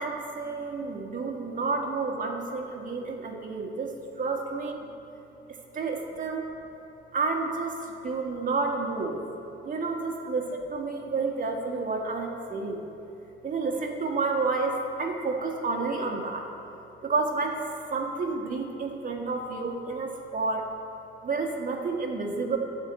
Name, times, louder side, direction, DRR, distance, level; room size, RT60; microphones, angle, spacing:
voice 1, 0.0-4.9 5.7-6.4 7.1-9.2 9.6-12.8 13.4-16.5 17.0-17.6 17.9-20.7 21.2-22.6, right 3 dB, 40° right, 1 dB, 1.6 m, -30 dB
12.5 x 4.3 x 8.1 m, 3.0 s
cardioid pair, 90°, 20 cm